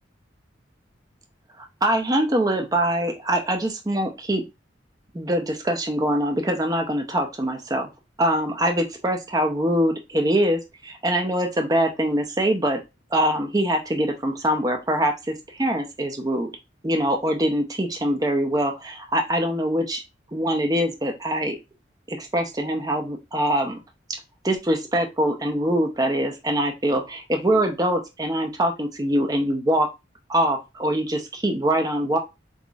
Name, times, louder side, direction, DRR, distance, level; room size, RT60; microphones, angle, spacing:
voice 1, 1.8-4.4 5.1-7.9 8.2-12.8 13.1-16.5 16.8-20.0 20.3-21.6 22.1-23.8 24.4-29.9 30.3-32.2, right 1 dB, 20° right, 4 dB, 0.6 m, -23 dB
3.9 x 3.0 x 2.4 m, 0.24 s
head